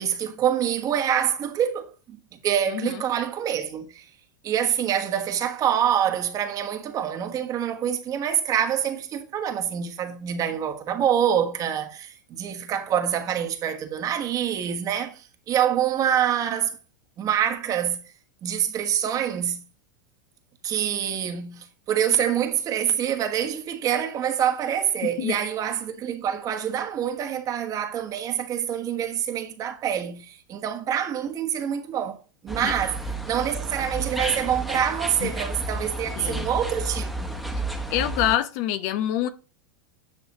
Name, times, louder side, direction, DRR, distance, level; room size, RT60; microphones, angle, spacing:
voice 1, 0.0-4.1 4.4-16.8 17.2-18.0 18.4-19.6 20.6-32.2 32.4-33.0 33.3-37.4, right 9 dB, 35° right, 1.3 m, -26 dB
sound 1, 32.5-38.4, right 2 dB, ahead, 1.2 m, -31 dB
voice 2, 36.2-36.5 37.9-39.3, left 12 dB, 50° left, 0.8 m, -26 dB
10.0 x 5.5 x 2.9 m
hypercardioid pair, 90°, 10 cm